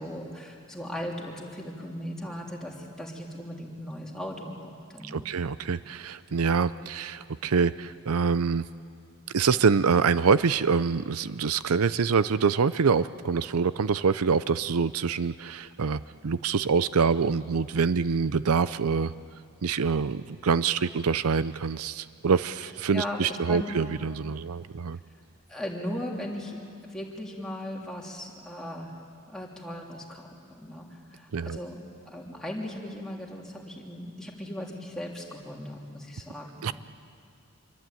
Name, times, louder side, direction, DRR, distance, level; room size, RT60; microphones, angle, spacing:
voice 1, 0.0-5.3 22.9-23.8 25.5-26.6 26.8-29.0 29.3-36.7, left 1 dB, 5° left, -2 dB, 3.2 m, -37 dB
voice 2, 5.0-8.6 9.3-19.1 19.6-25.0 31.3-31.6 36.6-36.7, right 5 dB, 80° right, 15 dB, 0.6 m, -25 dB
26.5 x 23.0 x 9.2 m, 2.4 s
head